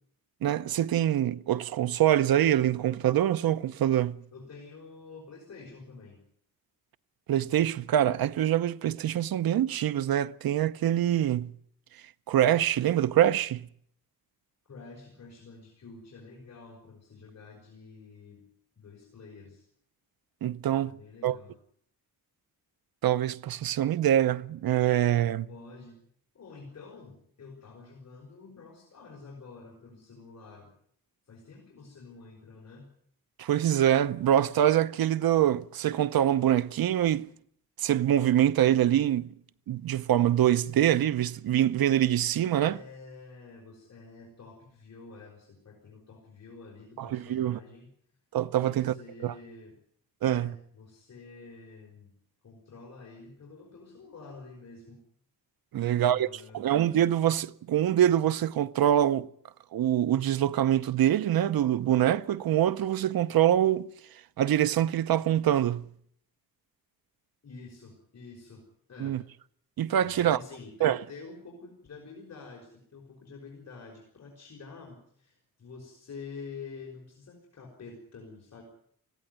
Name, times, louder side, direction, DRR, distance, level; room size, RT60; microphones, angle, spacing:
voice 1, 0.4-4.2 7.3-11.5 12.3-13.7 20.4-20.9 21.2-21.4 23.0-25.5 33.4-37.3 37.8-39.3 39.7-42.8 47.0-47.6 48.3-48.9 49.2-49.3 50.2-50.5 55.7-59.3 59.7-63.9 64.4-65.9 69.0-69.2 69.8-70.4 70.8-71.0, right 11 dB, 85° right, 0.8 m, -25 dB
voice 2, 4.3-6.2 14.7-18.4 18.8-19.7 20.8-21.5 25.5-26.0 26.3-30.7 31.3-32.9 42.5-47.9 48.6-49.7 50.2-52.1 52.4-55.0 55.8-56.7 67.4-69.2 70.0-78.6, left 4 dB, 50° left, 5.4 m, -48 dB
20.0 x 16.0 x 9.3 m
wide cardioid pair, 130°, 35 cm